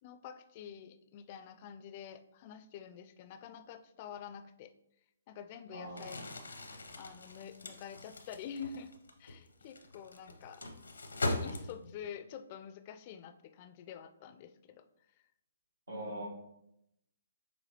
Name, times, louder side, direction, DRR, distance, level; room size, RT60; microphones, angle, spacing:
voice 1, 0.0-4.7 5.3-6.2 6.9-8.9 9.2-10.6 11.4-14.8 15.9-16.3, left 8 dB, 40° left, 10 dB, 0.3 m, -47 dB
voice 2, 5.7-6.2 15.9-16.3, right 1 dB, 85° right, -6 dB, 1.4 m, -42 dB
Crumpling crinkling, 5.9-12.1, left 2 dB, 85° left, 0.7 m, -40 dB
6.2 x 2.7 x 2.9 m, 0.81 s
hypercardioid pair, 135°, 0 cm